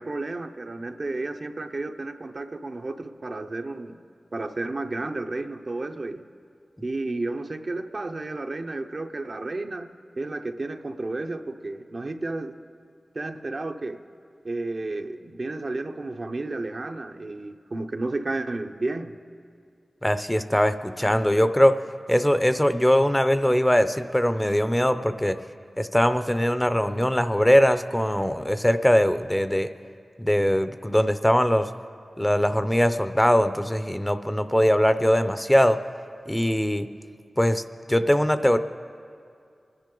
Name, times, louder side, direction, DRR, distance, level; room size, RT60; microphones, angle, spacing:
voice 1, 0.0-4.0 4.3-6.2 6.8-9.9 10.2-12.6 13.1-14.0 14.4-19.2, right 2 dB, 55° right, 6 dB, 0.6 m, -32 dB
voice 2, 20.0-21.8 22.1-25.4 25.8-29.7 30.2-31.7 32.2-35.8 36.3-36.9 37.4-37.6 37.9-38.6, equal, 10° left, 10 dB, 0.5 m, -21 dB
24.0 x 10.5 x 3.8 m, 2.3 s
wide cardioid pair, 65°, 0 cm